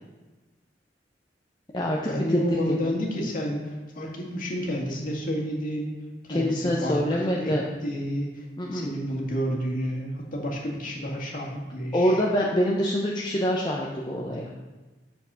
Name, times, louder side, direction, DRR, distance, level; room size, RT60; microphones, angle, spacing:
voice 1, 2.1-5.9 6.2-7.6 7.8-8.5 8.7-12.2, equal, 50° left, -1 dB, 2.0 m, -30 dB
voice 2, 6.3-7.6 8.6-8.9 11.9-14.5, equal, 25° left, -3 dB, 0.8 m, -25 dB
8.2 x 4.6 x 6.2 m, 1.2 s
head